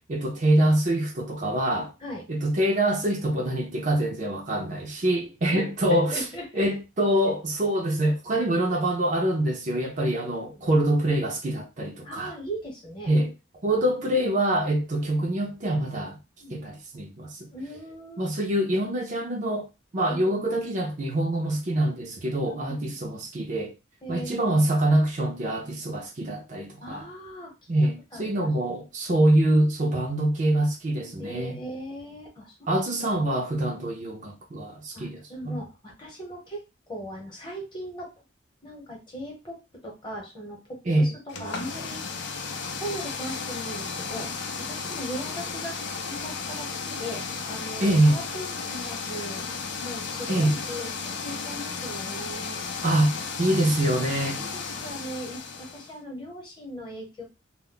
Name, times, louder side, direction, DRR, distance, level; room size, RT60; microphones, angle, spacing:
voice 1, 0.1-1.9 2.3-6.2 6.6-12.3 13.1-13.3 13.6-16.2 16.5-17.5 18.2-19.7 19.9-23.7 24.1-27.1 27.7-31.6 32.7-35.6 40.9-41.1 47.8-48.2 50.3-50.6 52.8-54.4, right 1 dB, 40° right, 0.5 m, -25 dB
voice 2, 5.9-6.7 10.4-10.8 12.0-13.1 16.4-16.6 17.5-18.3 20.1-20.6 22.5-23.0 24.0-24.6 26.8-27.5 28.1-28.5 31.2-32.8 34.9-36.6 36.9-38.1 38.6-41.1 41.4-44.3 44.7-45.8 46.1-49.4 49.8-52.6 53.9-57.2, equal, 25° left, 0.9 m, -39 dB
sound 1, 41.3-55.9, left 5 dB, 60° left, 0.4 m, -34 dB
2.2 x 2.0 x 3.7 m
head